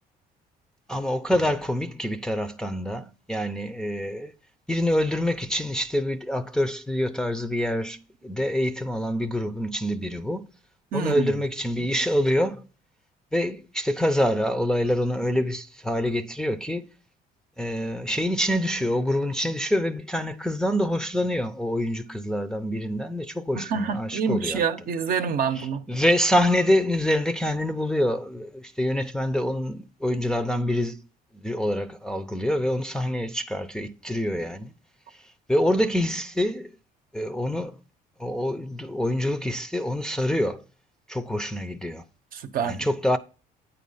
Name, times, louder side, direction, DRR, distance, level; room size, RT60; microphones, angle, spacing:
voice 1, 0.9-4.3 4.7-10.5 10.9-12.7 13.3-16.9 17.6-24.6 25.6-31.0 31.3-34.7 35.5-36.7 37.1-37.8 38.2-40.6 41.1-42.0 42.7-43.2, left 1 dB, 5° left, 0.5 m, -26 dB
voice 2, 10.9-11.4 23.5-25.8 42.3-42.9, right 6 dB, 60° right, 0.8 m, -27 dB
9.0 x 4.2 x 5.4 m
cardioid pair, 110°, 17 cm